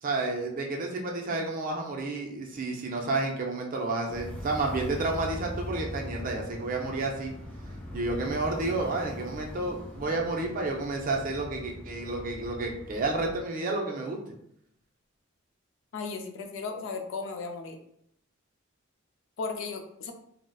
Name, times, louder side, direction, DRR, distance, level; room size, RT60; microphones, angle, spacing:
voice 1, 0.0-7.3 7.9-14.2, right 2 dB, 40° right, 1 dB, 0.4 m, -31 dB
sound 1, 4.1-13.4, left 1 dB, 5° left, 0.7 m, -41 dB
voice 2, 15.9-17.8 19.4-20.1, left 4 dB, 65° left, 5 dB, 0.4 m, -35 dB
3.7 x 2.0 x 2.3 m, 0.72 s
head